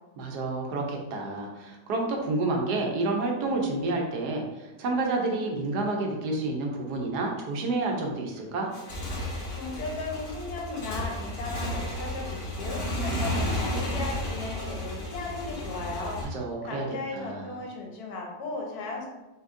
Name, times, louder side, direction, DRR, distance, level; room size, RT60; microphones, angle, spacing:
voice 1, 0.2-8.7 16.2-16.9 17.1-17.6, right 2 dB, 80° right, 1 dB, 1.3 m, -29 dB
Motorcycle / Engine, 8.6-16.2, left 1 dB, 35° left, 1.1 m, -32 dB
voice 2, 9.5-16.2 16.6-19.1, left 3 dB, 70° left, 0 dB, 1.4 m, -36 dB
5.3 x 2.9 x 2.5 m, 1.1 s
omnidirectional pair, 1.7 m